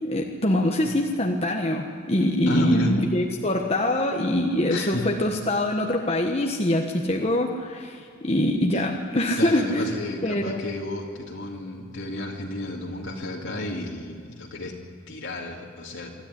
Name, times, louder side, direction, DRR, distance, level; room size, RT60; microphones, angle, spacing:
voice 1, 0.0-9.9 10.2-10.6, left 1 dB, 30° left, 1 dB, 1.4 m, -24 dB
voice 2, 2.5-2.9 4.7-5.1 8.7-8.9 9.4-14.8 15.1-16.1, left 2 dB, 60° left, -2 dB, 2.5 m, -32 dB
25.0 x 13.5 x 10.0 m, 2.2 s
head